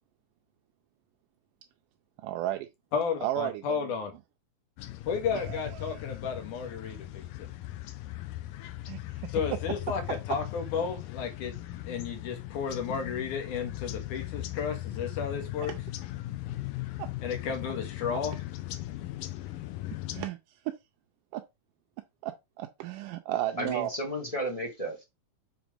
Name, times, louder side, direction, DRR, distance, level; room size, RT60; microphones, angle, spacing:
voice 1, 2.2-2.7 3.2-3.8 5.3-5.9 8.9-9.3 15.6-15.7 17.0-17.1 18.1-18.2 20.1-20.7 21.3-21.4 22.2-23.9, right 14 dB, 90° right, 2.2 m, -34 dB
voice 2, 2.9-4.1 5.1-7.3 9.3-11.6 11.8-15.7 17.2-18.4, left 6 dB, 70° left, 3.0 m, -33 dB
sound 1, 4.8-20.3, left 16 dB, 90° left, 2.4 m, -38 dB
voice 3, 23.6-25.0, right 1 dB, 25° left, 0.7 m, -33 dB
7.2 x 3.5 x 5.1 m
omnidirectional pair, 3.7 m